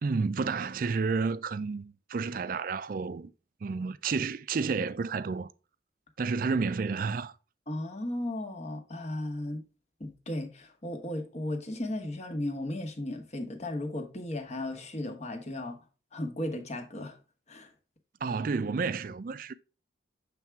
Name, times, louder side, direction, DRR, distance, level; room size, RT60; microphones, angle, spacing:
voice 1, 0.0-3.3 3.6-5.5 6.2-7.3 18.2-19.5, right 4 dB, 45° right, 0.4 m, -30 dB
voice 2, 7.7-9.6 10.0-15.8 16.1-17.2 17.5-17.7, left 1 dB, 35° left, 1.0 m, -35 dB
7.2 x 3.4 x 4.6 m
head